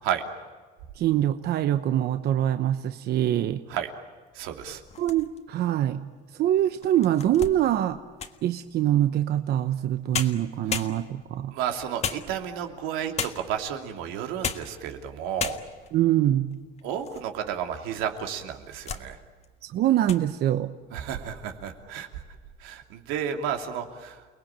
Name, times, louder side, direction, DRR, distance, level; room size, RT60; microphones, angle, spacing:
voice 1, 0.9-3.6 4.7-6.0 6.3-8.0 8.4-11.5 15.9-16.5 19.6-20.7, right 12 dB, 55° right, 9 dB, 1.0 m, -24 dB
voice 2, 4.3-4.8 11.5-15.6 16.8-19.2 20.9-22.1 22.6-24.2, right 9 dB, 90° right, 4 dB, 2.9 m, -32 dB
sound 1, 4.8-5.6 6.2-6.3 6.8-8.5 9.8-9.9 10.1-11.3 12.0-12.7 13.2-13.6 14.2-14.8 15.1-15.2 15.4-15.9 16.5-17.3 17.6-17.7 18.4-19.1 19.4-19.7 20.0-20.3, left 6 dB, 35° left, 1.5 m, -34 dB
29.5 x 20.0 x 8.9 m, 1.5 s
cardioid pair, 145°, 20 cm